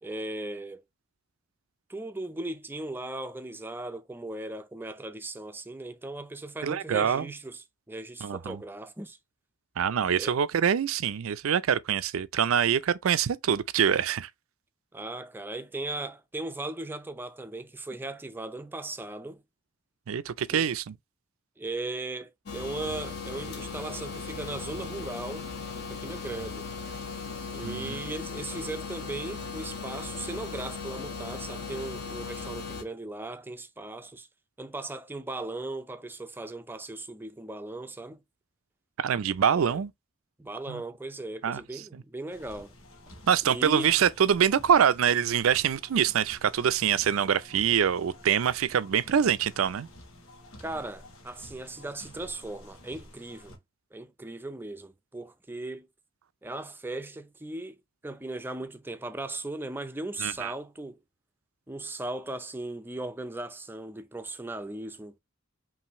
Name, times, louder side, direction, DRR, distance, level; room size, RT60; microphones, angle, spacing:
voice 1, 0.0-0.8 1.9-9.2 10.2-10.4 14.9-19.4 20.5-20.7 21.6-25.5 25.7-26.7 27.5-34.3 34.6-38.2 39.5-39.8 40.4-42.7 43.4-44.0 50.6-53.6 53.9-55.9 56.4-57.8 58.0-61.0 61.7-65.1, right 2 dB, 10° right, 0.4 m, -37 dB
voice 2, 6.6-7.3 8.2-8.6 9.8-14.3 20.1-21.0 27.6-28.0 39.0-39.9 40.7-40.8 41.4-41.6 43.3-49.9 60.2-60.5, right 8 dB, 80° right, 0.4 m, -25 dB
sound 1, 22.5-32.8, left 5 dB, 55° left, 1.1 m, -38 dB
sound 2, 42.3-53.6, left 1 dB, 90° left, 1.2 m, -51 dB
5.6 x 2.6 x 2.9 m
head